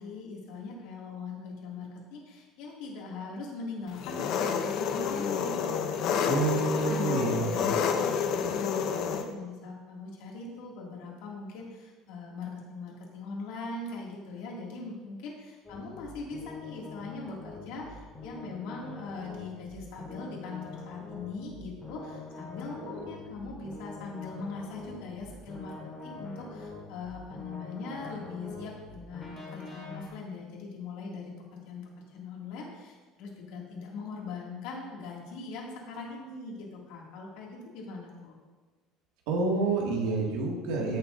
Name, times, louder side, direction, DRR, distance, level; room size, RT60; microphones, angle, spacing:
voice 1, 0.0-6.3 6.7-38.4, left 3 dB, 70° left, -2 dB, 2.5 m, -41 dB
Engine, 4.0-9.2, left 6 dB, 50° left, 0.7 m, -29 dB
voice 2, 6.2-7.6 22.8-23.1 39.3-41.0, right 3 dB, 80° right, -1 dB, 2.2 m, -29 dB
sound 1, 15.6-30.1, left 3 dB, 15° left, 2.4 m, -45 dB
14.5 x 6.8 x 2.7 m, 1.3 s
cardioid pair, 160°, 0 cm